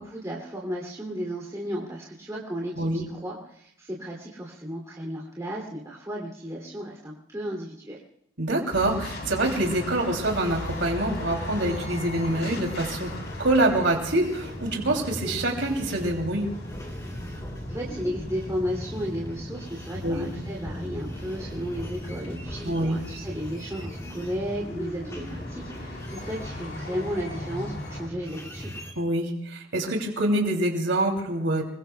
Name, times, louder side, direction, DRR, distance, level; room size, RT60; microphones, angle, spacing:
voice 1, 0.0-8.0 17.7-28.7, equal, 15° right, -4 dB, 2.8 m, -34 dB
voice 2, 8.4-13.1 13.4-16.5 20.0-20.3 22.6-23.0 29.0-31.6, right 1 dB, 70° right, 1 dB, 2.9 m, -25 dB
sound 1, 8.7-28.1, left 1 dB, 55° left, 3.6 m, -39 dB
sound 2, 10.2-28.9, equal, 15° left, 2.8 m, -38 dB
26.5 x 23.0 x 2.3 m, 0.73 s
head